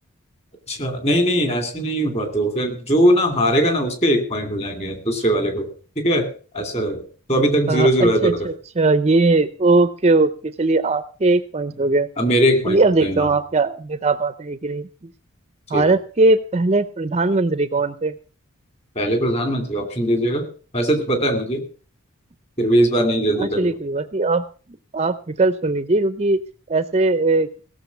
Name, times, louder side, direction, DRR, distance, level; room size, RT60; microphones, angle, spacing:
voice 1, 0.7-5.7 6.0-7.0 7.3-8.5 12.2-13.3 15.7-15.9 19.0-20.5 20.7-21.6 22.6-23.7, equal, 30° left, 5 dB, 2.7 m, -20 dB
voice 2, 7.7-12.1 12.7-14.9 15.7-18.2 23.4-24.4 24.9-26.4 26.7-27.5, right 3 dB, 30° right, 13 dB, 0.5 m, -19 dB
17.0 x 6.7 x 6.9 m, 0.40 s
head